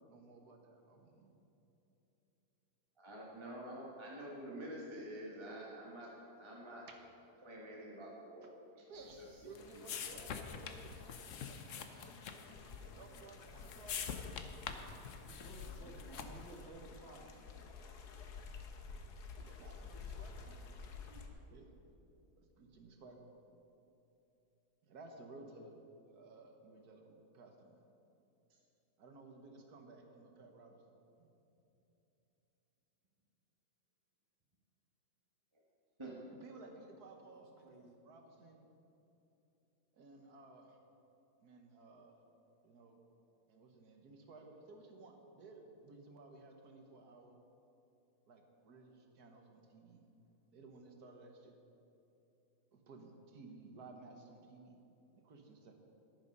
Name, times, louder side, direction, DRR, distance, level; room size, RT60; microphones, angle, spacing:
voice 1, 0.0-1.3 6.9-7.0 8.9-9.2 9.4-12.2 12.8-15.0 19.4-21.9 22.6-23.3 24.8-25.8 26.1-27.8 29.0-30.9 31.2-31.3 36.3-37.8 38.0-38.7 39.9-40.8 41.4-42.1 42.6-43.0 43.5-47.4 48.3-50.1 50.5-51.6 52.7-54.8 55.2-55.7, right 3 dB, 75° right, 3 dB, 1.7 m, -57 dB
voice 2, 3.0-6.9 7.4-8.5 8.8-8.9 9.2-9.3 9.7-9.8 10.1-10.3 36.0-36.2, right 1 dB, 20° right, -4 dB, 1.5 m, -48 dB
sound 1, 9.1-16.6, left 7 dB, 60° left, 1.0 m, -46 dB
sound 2, 9.6-21.3, left 5 dB, 85° left, 1.5 m, -52 dB
voice 3, 15.2-18.0 37.6-37.9, right 2 dB, 45° right, 0 dB, 1.7 m, -55 dB
11.0 x 10.5 x 5.4 m, 3.0 s
omnidirectional pair, 1.7 m